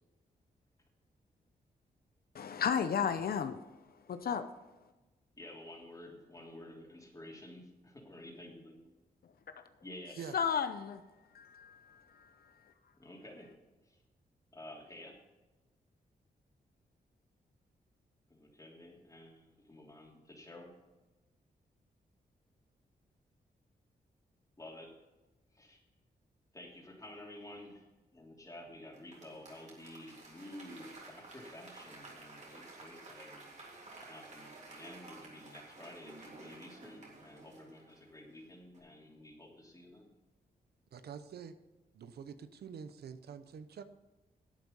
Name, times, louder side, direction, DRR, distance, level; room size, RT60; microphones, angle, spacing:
voice 1, 2.3-3.6 4.1-4.4 10.3-11.0 11.3-12.0, left 7 dB, 70° left, 0.7 m, -33 dB
voice 2, 5.4-8.7 9.8-10.1 13.0-13.5 13.8-14.0 14.5-15.1 18.3-20.7 24.6-24.9 25.5-25.8 26.5-27.8 28.1-40.1, left 1 dB, 20° left, 3.1 m, -51 dB
Applause / Crowd, 28.9-38.4 38.7-38.8, right 2 dB, 45° right, 3.3 m, -53 dB
voice 3, 40.9-41.6 41.9-43.8, right 7 dB, 85° right, 0.8 m, -46 dB
11.0 x 8.4 x 5.3 m
cardioid pair, 85°, 16 cm